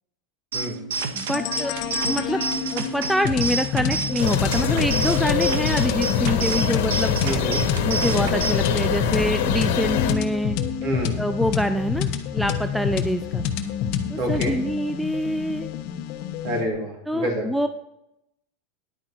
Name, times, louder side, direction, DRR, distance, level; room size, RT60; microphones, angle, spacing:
sound 1, 0.5-8.5, right 4 dB, 85° right, 1.4 m, -29 dB
voice 1, 1.1-1.8 2.0-2.4 2.7-7.2 7.8-10.6 11.2-13.4 14.1-15.7 17.1-17.7, equal, ahead, 8 dB, 0.4 m, -25 dB
sound 2, 1.3-16.7, left 8 dB, 45° left, 1.1 m, -28 dB
sound 3, 4.2-10.1, left 7 dB, 70° left, 1.4 m, -25 dB
voice 2, 7.2-7.6 10.8-11.1 14.2-14.5 16.4-17.5, right 1 dB, 45° right, 0 dB, 3.4 m, -27 dB
10.5 x 9.0 x 4.5 m, 0.83 s
supercardioid pair, 160°, 0 cm